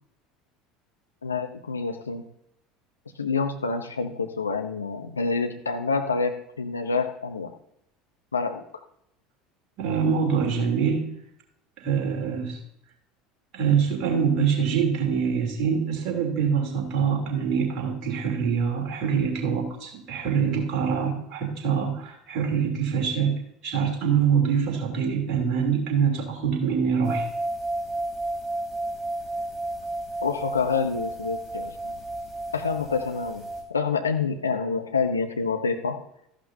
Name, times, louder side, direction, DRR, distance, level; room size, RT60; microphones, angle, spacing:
voice 1, 1.2-2.2 3.2-7.5 8.3-8.6 30.2-31.9 32.5-36.0, left 4 dB, 85° left, 6 dB, 0.7 m, -27 dB
voice 2, 9.8-11.1 11.8-12.6 13.5-23.4 23.6-27.3, right 6 dB, 50° right, 0 dB, 3.1 m, -24 dB
sound 1, 27.0-33.6, right 2 dB, ahead, 4.5 m, -32 dB
13.5 x 11.5 x 2.7 m, 0.75 s
figure-of-eight pair, 70°, 0 cm